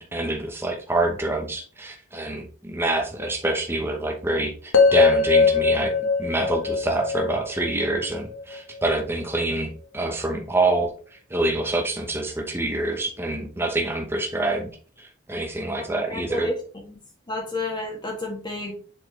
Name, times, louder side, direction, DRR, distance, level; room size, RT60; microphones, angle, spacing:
voice 1, 0.0-14.7 15.0-16.5, right 2 dB, 10° right, 2 dB, 0.9 m, -26 dB
sound 1, 4.7-8.9, left 4 dB, 75° left, 1.2 m, -21 dB
voice 2, 16.1-16.6 16.8-17.0 17.3-18.7, left 2 dB, 25° left, 0 dB, 1.4 m, -30 dB
7.5 x 4.3 x 3.2 m, 0.42 s
head